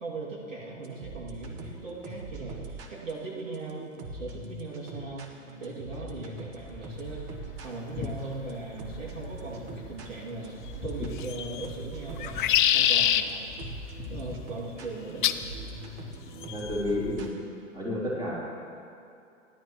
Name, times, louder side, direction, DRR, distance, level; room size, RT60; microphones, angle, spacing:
voice 1, 0.0-3.9 4.1-5.3 5.6-7.3 7.6-13.4 14.1-15.3, right 3 dB, 75° right, -4 dB, 2.7 m, -39 dB
sound 1, 0.8-17.5, right 3 dB, 30° right, 1.2 m, -43 dB
sound 2, 6.6-16.5, left 3 dB, 20° left, 0.9 m, -44 dB
sound 3, 11.2-11.7 12.2-13.2 15.2-15.5 16.4-16.8, left 11 dB, 40° left, 0.4 m, -24 dB
voice 2, 16.1-17.3 17.7-18.4, left 1 dB, 10° right, -7 dB, 3.1 m, -31 dB
16.0 x 11.0 x 3.1 m, 2.6 s
hypercardioid pair, 120°, 39 cm